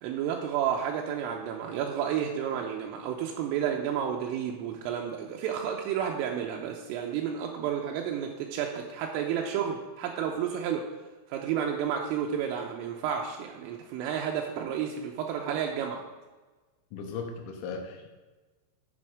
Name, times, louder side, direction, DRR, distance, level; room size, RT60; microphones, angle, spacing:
voice 1, 0.0-10.9 11.3-16.0, right 8 dB, 85° right, 1 dB, 3.2 m, -31 dB
voice 2, 16.9-18.1, left 5 dB, 80° left, 3 dB, 3.7 m, -37 dB
12.0 x 6.3 x 4.9 m, 1.2 s
omnidirectional pair, 6.0 m